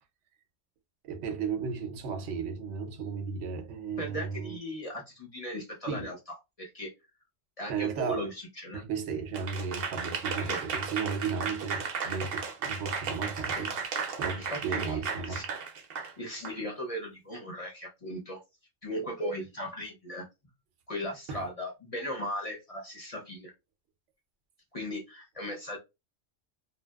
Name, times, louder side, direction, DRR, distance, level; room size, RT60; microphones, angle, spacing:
voice 1, 1.0-4.6 5.9-6.1 7.7-8.3 8.7-13.7 14.2-15.5 21.3-21.4, right 6 dB, 85° right, 0.9 m, -34 dB
voice 2, 4.0-6.2 6.6-6.9 7.6-8.9 10.5-10.6 13.5-13.6 14.4-15.4 16.2-18.4 18.8-20.3 20.9-23.5 24.7-25.8, equal, 40° left, 0.6 m, -37 dB
Applause / Crowd, 9.3-16.6, right 6 dB, 60° right, 0.7 m, -34 dB
2.7 x 2.1 x 2.2 m
omnidirectional pair, 1.2 m